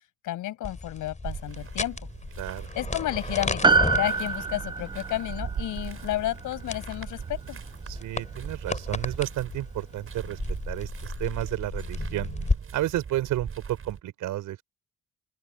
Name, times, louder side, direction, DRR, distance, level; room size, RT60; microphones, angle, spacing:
voice 1, 0.2-2.0 2.8-7.6, left 14 dB, 85° left, 7.0 m, -31 dB
sound 1, 0.6-12.6, left 3 dB, 25° left, 4.8 m, -35 dB
sound 2, 1.2-14.0, right 6 dB, 45° right, 6.3 m, -39 dB
voice 2, 2.4-2.7 7.9-10.4 10.7-12.3 12.7-14.6, right 14 dB, 85° right, 5.5 m, -31 dB
Piano, 3.6-8.2 8.5-8.6, right 4 dB, 15° right, 0.6 m, -27 dB
open air
cardioid pair, 90°, 30 cm